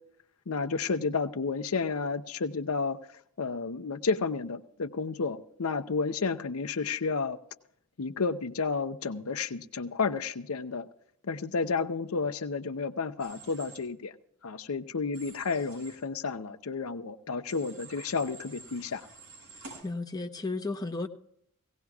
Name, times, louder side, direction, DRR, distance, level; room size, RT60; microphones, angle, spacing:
voice 1, 0.5-3.0 3.4-7.4 8.0-10.9 11.2-14.1 14.4-19.1, left 4 dB, 75° left, 9 dB, 0.7 m, -31 dB
Human voice / Train, 13.2-13.8 15.1-16.0 17.5-19.8, right 3 dB, 70° right, 6.3 m, -49 dB
voice 2, 19.8-21.1, left 3 dB, 20° left, 3 dB, 0.9 m, -33 dB
18.0 x 17.5 x 2.4 m, 0.70 s
head